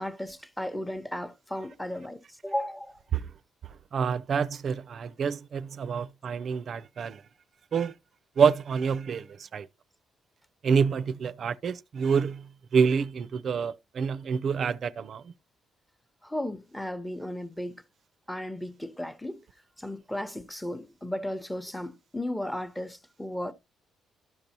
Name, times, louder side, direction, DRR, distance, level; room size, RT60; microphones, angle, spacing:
voice 1, 0.0-3.0 16.2-17.8 18.3-19.4 19.8-23.5, left 1 dB, 5° left, 0.8 m, -35 dB
voice 2, 3.9-7.2 7.7-8.0 8.4-9.7 10.6-15.3, right 6 dB, 55° right, 0.5 m, -27 dB
12.5 x 5.3 x 2.8 m
cardioid pair, 90°, 0 cm